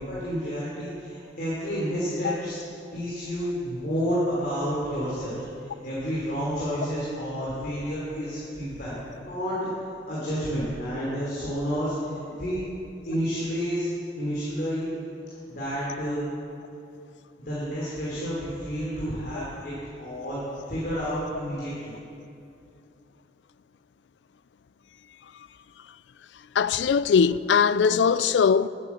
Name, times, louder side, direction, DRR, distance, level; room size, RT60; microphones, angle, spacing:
voice 1, 0.0-2.6 2.9-5.3 5.6-8.9 9.2-9.6 9.9-12.6 13.0-13.9 14.2-14.9 15.5-16.3 17.4-19.7 20.0-20.4 20.7-21.9, equal, 55° left, 3.2 m, -30 dB
voice 2, 26.6-28.7, left 6 dB, 90° left, 0.4 m, -21 dB
12.0 x 9.1 x 7.2 m
head